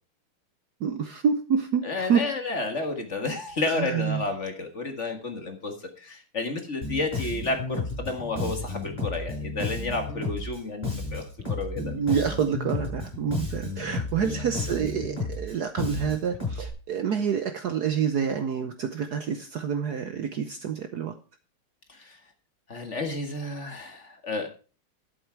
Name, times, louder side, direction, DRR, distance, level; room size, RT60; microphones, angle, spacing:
voice 1, 0.8-2.2 3.7-4.2 11.8-21.1, right 7 dB, 65° right, 9 dB, 1.1 m, -27 dB
voice 2, 1.8-11.2 11.5-11.9 14.2-14.4 21.9-22.2 22.7-24.5, left 3 dB, 35° left, 5 dB, 1.7 m, -31 dB
Bass guitar, 6.8-16.7, left 3 dB, 15° left, 7.1 m, -32 dB
11.5 x 8.5 x 4.5 m, 0.35 s
omnidirectional pair, 2.3 m